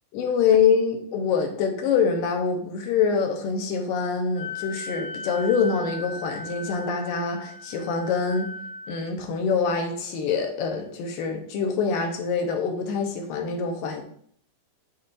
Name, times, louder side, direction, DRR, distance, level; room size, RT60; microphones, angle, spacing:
voice 1, 0.1-8.5 8.9-14.0, left 6 dB, 75° left, 3 dB, 2.5 m, -25 dB
Wind instrument woodwind instrument, 4.3-9.0, left 3 dB, 60° left, 1.4 m, -37 dB
11.0 x 4.2 x 2.6 m, 0.62 s
omnidirectional pair, 4.1 m